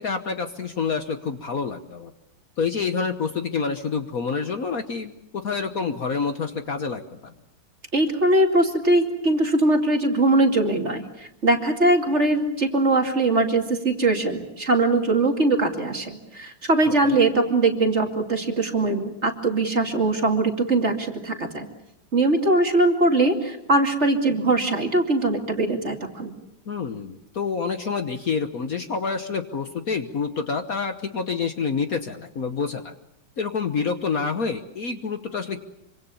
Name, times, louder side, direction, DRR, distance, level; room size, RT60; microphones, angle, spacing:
voice 1, 0.0-2.1 2.6-7.3 17.0-17.2 26.7-32.9 33.4-35.6, left 5 dB, 50° left, 8 dB, 1.5 m, -28 dB
voice 2, 7.9-21.7 22.1-26.3, right 2 dB, 35° right, 3 dB, 2.7 m, -21 dB
26.0 x 25.5 x 7.0 m, 0.81 s
omnidirectional pair, 2.1 m